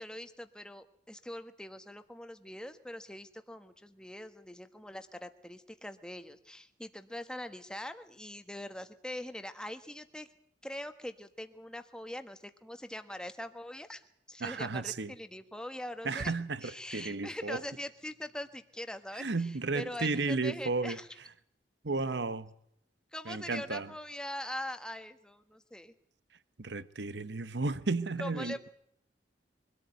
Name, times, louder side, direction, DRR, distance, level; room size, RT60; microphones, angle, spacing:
voice 1, 0.0-10.3 10.6-14.0 14.3-16.3 16.6-21.1 23.1-25.9 28.2-28.7, left 1 dB, 5° left, 1.3 m, -42 dB
voice 2, 14.4-15.1 16.0-17.6 19.1-21.0 21.8-22.5 23.3-23.9 26.6-28.7, right 3 dB, 75° right, 1.0 m, -33 dB
24.0 x 13.5 x 9.1 m
head